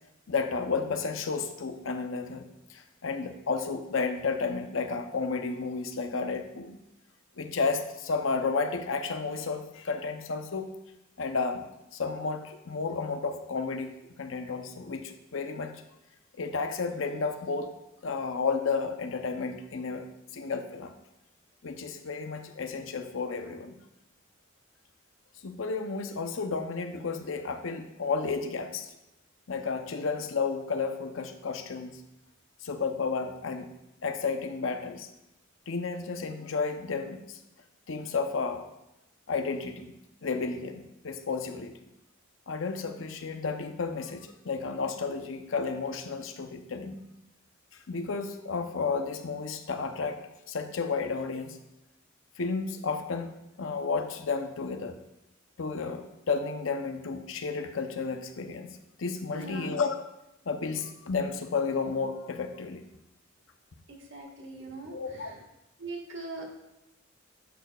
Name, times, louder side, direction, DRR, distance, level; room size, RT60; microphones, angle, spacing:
voice 1, 0.3-6.8 7.4-10.7 11.2-11.7 11.9-13.9 14.2-15.7 16.4-17.7 18.0-20.1 20.3-20.9 21.6-23.8 25.4-28.9 29.5-32.0 32.6-33.7 34.0-35.1 35.7-37.4 37.9-38.6 39.3-39.9 40.2-41.8 42.5-47.0 47.9-51.6 52.4-55.0 55.6-60.0 60.5-62.8 64.9-65.3, left 4 dB, 70° left, 7 dB, 0.6 m, -32 dB
voice 2, 59.3-59.8 63.9-65.4 65.8-66.6, right 2 dB, 65° right, -1 dB, 1.4 m, -41 dB
10.0 x 6.6 x 2.3 m, 0.90 s
head